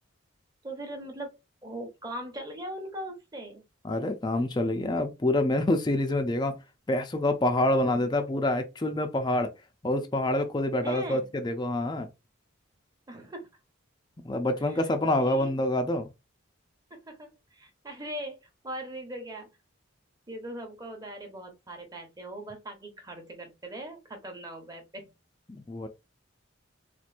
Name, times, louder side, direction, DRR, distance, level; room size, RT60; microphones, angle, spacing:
voice 1, 0.6-3.6 7.8-8.1 10.8-11.3 13.1-13.5 14.7-15.5 16.9-19.5 20.3-25.1, right 1 dB, 20° right, 0.9 m, -40 dB
voice 2, 3.8-6.5 6.9-9.5 9.8-12.1 14.2-16.1 25.5-25.9, left 1 dB, 20° left, 0.4 m, -27 dB
4.3 x 2.5 x 2.5 m
head